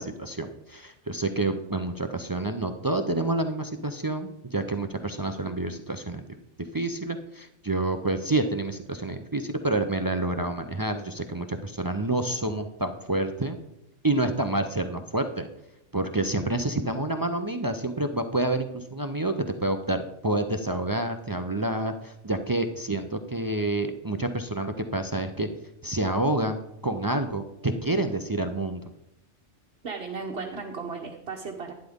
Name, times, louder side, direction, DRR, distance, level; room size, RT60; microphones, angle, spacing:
voice 1, 0.0-6.2 6.7-13.6 14.0-15.5 15.9-25.5 25.8-28.8, right 2 dB, 35° right, 7 dB, 0.3 m, -28 dB
voice 2, 29.8-31.7, right 4 dB, 55° right, -1 dB, 1.2 m, -35 dB
11.5 x 10.5 x 3.6 m, 0.82 s
omnidirectional pair, 1.3 m